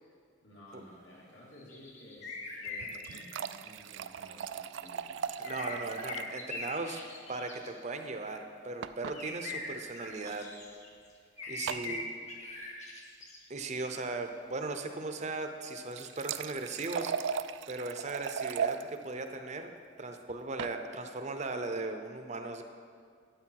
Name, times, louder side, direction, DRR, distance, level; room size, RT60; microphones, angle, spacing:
voice 1, 0.0-6.1 11.5-12.1, left 1 dB, 75° left, -3 dB, 2.4 m, -55 dB
sound 1, 1.5-3.2 5.4-7.7 9.1-10.9 11.4-13.4, left 3 dB, 40° left, 1.6 m, -41 dB
sound 2, 2.7-6.4 6.7-6.8 7.0-7.1 8.8-9.2 10.1-10.3 11.7-11.9 15.7-18.8 20.3-20.8, right 7 dB, 75° right, 0.3 m, -37 dB
voice 2, 5.4-7.0 7.3-10.5 11.5-12.0 13.5-17.3 17.7-19.7 20.0-22.6, right 3 dB, 40° right, 6 dB, 0.7 m, -38 dB
12.5 x 8.3 x 4.6 m, 2.2 s
head